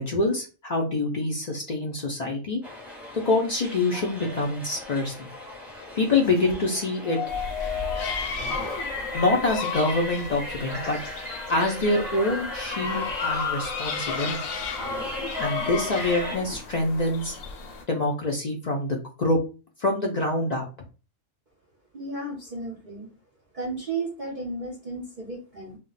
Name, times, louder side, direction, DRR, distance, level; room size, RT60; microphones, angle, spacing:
voice 1, 0.0-2.6 3.1-5.3 6.0-7.2 9.1-11.0 11.5-14.4 15.4-17.4 17.9-19.4 19.8-20.6, left 2 dB, 60° left, 0 dB, 0.4 m, -25 dB
sound 1, 2.6-16.4, left 3 dB, ahead, 0.6 m, -35 dB
Zipper (clothing), 4.0-6.7 8.1-9.3 11.9-12.0 12.2-13.2 13.7-13.8 14.6-16.6, left 1 dB, 35° left, 0.8 m, -42 dB
sound 2, 7.3-17.8, left 5 dB, 80° left, 1.0 m, -35 dB
voice 2, 21.9-23.1 23.5-25.8, right 3 dB, 45° right, -3 dB, 0.7 m, -34 dB
2.3 x 2.1 x 3.9 m, 0.33 s
omnidirectional pair, 1.4 m